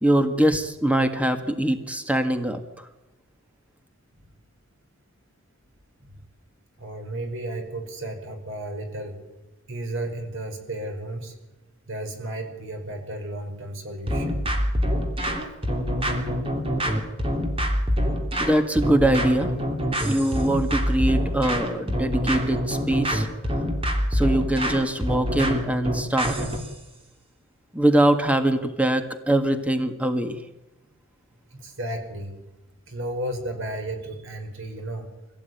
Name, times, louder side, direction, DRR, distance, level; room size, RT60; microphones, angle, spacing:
voice 1, 0.0-2.6 18.4-19.5 20.1-23.3 24.1-26.3 27.7-30.4, right 1 dB, 5° right, 7 dB, 1.7 m, -22 dB
voice 2, 6.8-9.2 9.7-11.4 11.9-14.4 31.5-32.4 32.9-35.1, right 1 dB, 55° right, 5 dB, 5.2 m, -33 dB
sound 1, 14.1-26.7, equal, 25° right, 3.1 m, -25 dB
24.5 x 17.0 x 9.4 m, 1.0 s
head